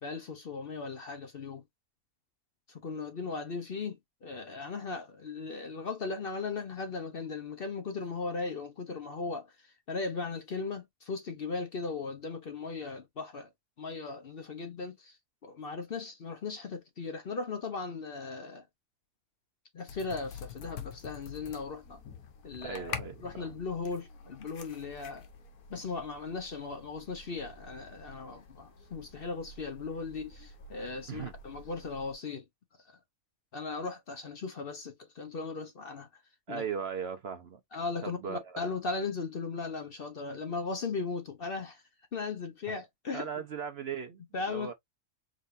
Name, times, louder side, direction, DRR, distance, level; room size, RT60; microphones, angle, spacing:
voice 1, 0.0-1.6 2.7-9.5 9.9-13.5 13.8-15.1 15.4-18.6 19.7-22.0 22.4-25.3 25.7-32.4 33.5-36.1 36.5-36.6 37.7-41.8 42.1-43.3 44.3-44.7, left 4 dB, 50° left, 0.9 m, -37 dB
sound 1, 19.9-32.1, left 6 dB, 90° left, 1.5 m, -47 dB
voice 2, 22.6-23.6 31.1-31.3 36.5-37.6 38.0-38.7 42.7-42.8 43.1-44.7, right 7 dB, 55° right, 0.8 m, -38 dB
4.7 x 3.8 x 2.6 m
omnidirectional pair, 1.5 m